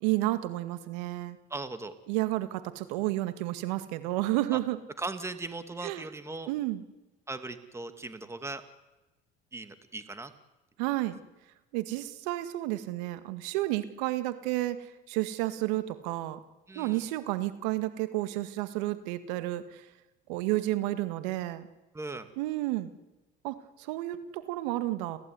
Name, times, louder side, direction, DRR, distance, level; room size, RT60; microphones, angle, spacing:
voice 1, 0.0-1.4 2.1-4.8 5.8-6.0 6.5-6.8 10.8-11.2 11.7-16.4 16.8-19.8 20.3-21.7 22.4-22.9 23.4-25.2, right 17 dB, 85° right, 11 dB, 1.9 m, -31 dB
voice 2, 1.5-1.9 4.5-4.6 5.0-6.5 7.3-8.6 9.5-10.3 16.7-17.0 21.9-22.3, right 3 dB, 15° right, 9 dB, 2.5 m, -38 dB
30.0 x 15.5 x 9.7 m, 1.0 s
supercardioid pair, 105°, 21 cm